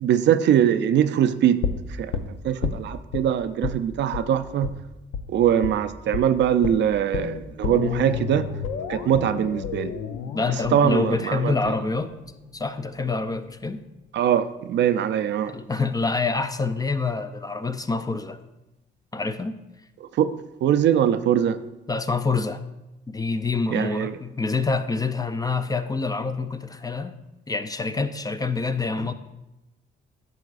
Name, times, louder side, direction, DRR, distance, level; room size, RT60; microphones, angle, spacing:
voice 1, 0.0-1.7 2.0-2.1 2.4-4.7 5.3-8.5 8.9-9.9 10.7-11.5 14.1-15.5 20.2-20.3 20.6-21.6 23.7-24.1, right 9 dB, 65° right, 12 dB, 0.4 m, -22 dB
sound 1, 1.6-3.2 3.6-3.8 4.1-4.3 4.6-4.8 5.1-5.3 5.6-5.8 6.1-6.3 6.6-12.6 12.9-13.0, left 6 dB, 90° left, 0.6 m, -31 dB
voice 2, 10.3-12.1 12.5-13.8 15.5-18.4 19.1-19.6 21.9-22.6 23.1-27.2 27.5-29.1, left 4 dB, 20° left, 10 dB, 0.4 m, -26 dB
10.5 x 7.0 x 2.5 m, 0.97 s
cardioid pair, 90°, 20 cm